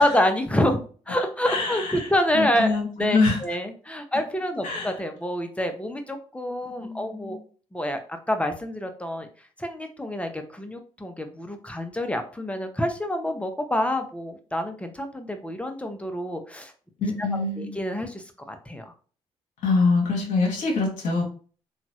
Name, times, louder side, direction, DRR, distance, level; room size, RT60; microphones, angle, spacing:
voice 1, 0.0-7.4 7.7-9.3 9.6-16.7 17.2-17.3 17.6-18.8, left 1 dB, 10° left, 6 dB, 0.6 m, -27 dB
voice 2, 1.5-2.1 2.3-3.4 4.6-4.9 6.8-7.4 17.0-17.8 19.6-21.2, left 3 dB, 65° left, 0 dB, 0.9 m, -24 dB
2.9 x 2.3 x 2.8 m, 0.40 s
hypercardioid pair, 50°, 14 cm